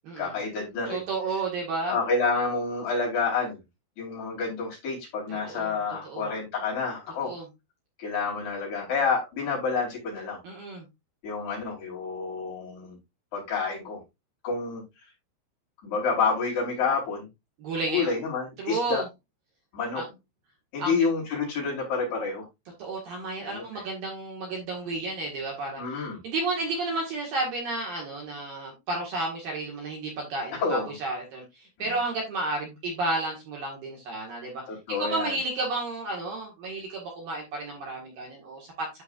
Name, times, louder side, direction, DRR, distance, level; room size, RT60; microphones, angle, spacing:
voice 1, 0.2-1.0 1.8-3.6 4.0-7.3 8.0-10.4 11.2-13.0 13.3-14.0 14.4-14.8 15.8-17.3 17.9-19.0 19.7-20.0 20.7-22.4 23.4-23.8 25.8-26.2 30.5-30.9 31.8-31.9 34.7-35.4, left 4 dB, 55° left, -4 dB, 5.8 m, -29 dB
voice 2, 0.9-1.9 5.5-5.7 6.0-6.2 7.2-7.4 10.4-10.8 17.6-18.2 18.6-19.0 19.9-20.1 20.8-21.0 22.8-34.6 35.0-38.9, right 2 dB, 60° right, -1 dB, 2.8 m, -32 dB
13.0 x 4.7 x 2.5 m, 0.22 s
omnidirectional pair, 5.8 m